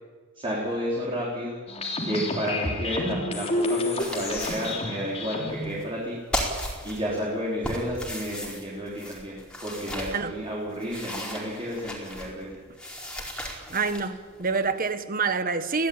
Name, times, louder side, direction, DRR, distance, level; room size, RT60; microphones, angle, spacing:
voice 1, 0.4-1.6 2.0-6.2 6.8-9.3 9.6-12.4, equal, 25° right, -5 dB, 4.8 m, -31 dB
sound 1, 1.7-5.6, left 2 dB, 30° left, 3.4 m, -29 dB
sound 2, 4.0-4.7 5.1-5.2 5.5-6.0 6.3-7.2 7.6-10.1 10.6-12.4 12.8-14.9, equal, 5° left, 4.6 m, -35 dB
voice 2, 13.7-15.9, right 4 dB, 40° right, 10 dB, 1.5 m, -27 dB
23.0 x 17.0 x 9.1 m, 1.4 s
head